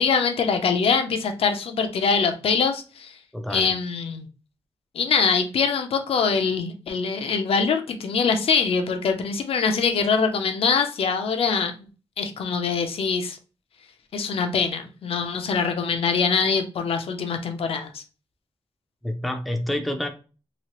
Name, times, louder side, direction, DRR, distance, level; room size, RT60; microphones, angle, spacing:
voice 1, 0.0-3.2 3.5-4.3 4.9-11.7 12.2-13.4 14.1-18.0, left 5 dB, 80° left, 6 dB, 0.6 m, -23 dB
voice 2, 3.3-3.7 19.0-20.1, left 1 dB, ahead, 5 dB, 0.4 m, -28 dB
3.0 x 2.8 x 2.9 m, 0.34 s
wide cardioid pair, 175°, 10 cm